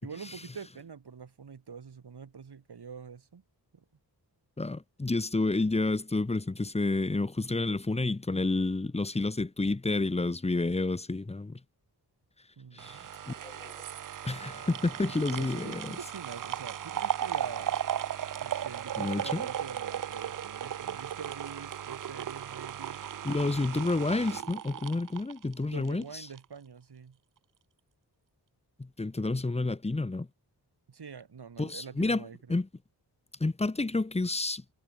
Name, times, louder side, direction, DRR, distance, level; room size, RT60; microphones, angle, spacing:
voice 1, 0.0-3.4 3.7-3.8 12.6-13.2 15.0-17.8 18.4-23.0 25.7-27.2 30.9-32.6, right 6 dB, 70° right, 4.8 m, -45 dB
voice 2, 4.6-11.6 12.7-13.0 13.3-13.8 14.2-16.0 19.0-19.4 23.2-26.3 28.8-30.3 31.6-32.2 32.5-32.7 33.4-34.6, left 2 dB, 15° left, 0.9 m, -30 dB
sound 1, 12.8-26.0 26.4-26.5, right 10 dB, 50° right, 0.5 m, -36 dB
wide cardioid pair, 110°, 41 cm